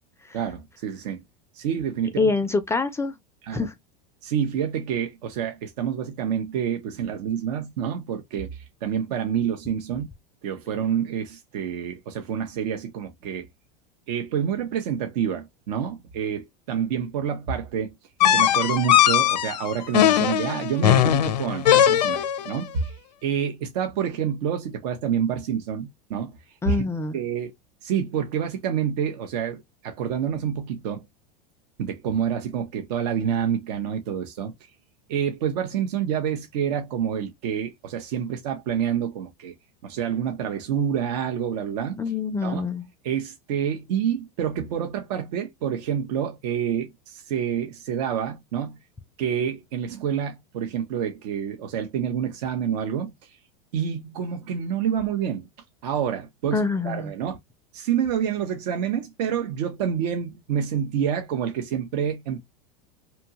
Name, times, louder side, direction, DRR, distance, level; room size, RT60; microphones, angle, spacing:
voice 1, 0.3-1.2 1.5-2.3 3.5-3.7 4.2-10.1 10.4-13.5 14.1-17.9 18.3-23.0 23.2-26.4 26.7-26.8 27.1-27.5 27.8-31.1 31.8-34.7 35.1-39.5 39.8-42.0 42.4-42.6 43.0-48.8 49.2-53.4 53.7-55.5 55.8-57.4 57.7-62.4, right 8 dB, 70° right, 0.7 m, -28 dB
voice 2, 2.2-3.2 3.5-3.7 26.6-27.2 42.0-42.8 56.5-57.1, left 4 dB, 15° left, 0.3 m, -25 dB
sound 1, 18.2-22.5, left 11 dB, 90° left, 0.5 m, -19 dB
2.7 x 2.2 x 2.8 m
hypercardioid pair, 105°, 21 cm